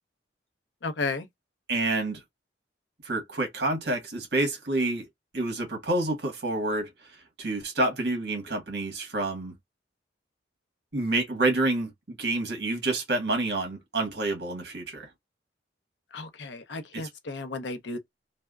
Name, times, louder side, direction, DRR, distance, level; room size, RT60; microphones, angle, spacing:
voice 1, 0.8-1.2 16.1-18.0, left 3 dB, 75° left, 0.7 m, -33 dB
voice 2, 1.7-2.2 3.0-5.0 5.3-6.9 7.4-9.5 10.9-15.1 16.9-17.1, right 2 dB, 65° right, 1.4 m, -28 dB
3.4 x 2.1 x 2.3 m
head